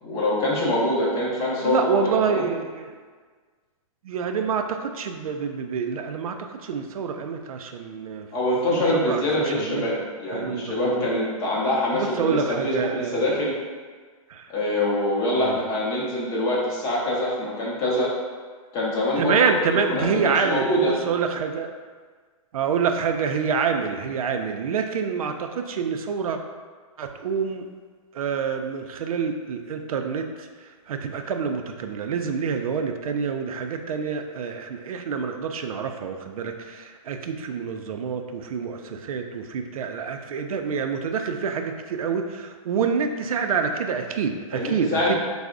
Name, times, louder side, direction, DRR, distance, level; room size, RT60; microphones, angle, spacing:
voice 1, 0.0-1.9 2.3-2.5 8.3-13.6 14.5-18.1 18.7-20.9 44.5-45.2, left 1 dB, 20° left, -5 dB, 0.6 m, -24 dB
voice 2, 1.6-3.0 4.0-6.4 6.6-8.3 8.7-9.2 9.5-9.9 10.3-11.1 11.9-13.5 14.3-14.5 15.4-15.6 19.2-21.7 22.5-26.4 27.0-27.7 28.1-30.5 30.9-45.2, right 6 dB, 85° right, 5 dB, 0.4 m, -27 dB
3.3 x 2.0 x 3.6 m, 1.5 s
hypercardioid pair, 165°, 18 cm